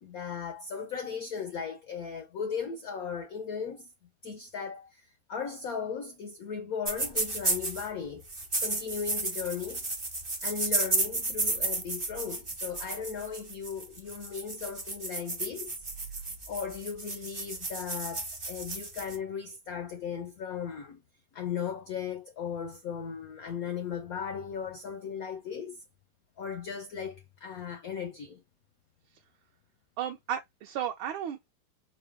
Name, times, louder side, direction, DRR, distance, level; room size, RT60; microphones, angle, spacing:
voice 1, 0.0-3.9 4.2-8.3 8.6-9.9 10.4-15.8 16.5-21.0 21.3-25.8 26.4-28.4, left 7 dB, 80° left, 0.8 m, -37 dB
sound 1, 6.8-7.9 8.3-19.2, right 2 dB, 45° right, 0.4 m, -33 dB
voice 2, 30.0-31.5, right 10 dB, 75° right, 1.4 m, -34 dB
4.9 x 2.1 x 3.4 m
omnidirectional pair, 2.4 m